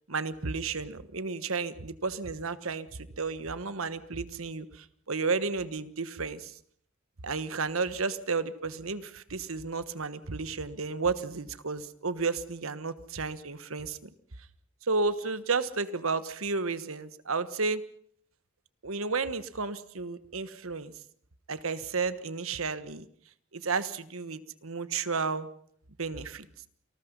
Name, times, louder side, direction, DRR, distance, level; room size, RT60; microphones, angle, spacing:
voice 1, 0.1-6.6 7.2-14.1 14.8-17.8 18.8-20.9 21.5-23.1 23.5-25.5 26.0-26.5, right 4 dB, 90° right, 13 dB, 1.4 m, -32 dB
28.5 x 19.5 x 5.6 m, 0.62 s
head